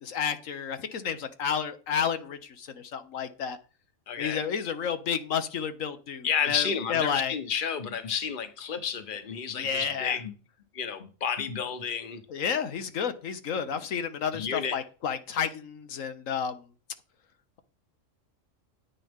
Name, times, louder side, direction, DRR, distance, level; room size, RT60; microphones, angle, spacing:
voice 1, 0.0-3.6 4.2-7.3 9.5-10.2 12.3-16.6, left 7 dB, 80° left, 1.4 m, -31 dB
voice 2, 4.1-4.4 6.2-10.3 10.7-12.2 14.3-14.8, left 7 dB, 40° left, 1.2 m, -31 dB
9.9 x 9.7 x 3.6 m
omnidirectional pair, 1.4 m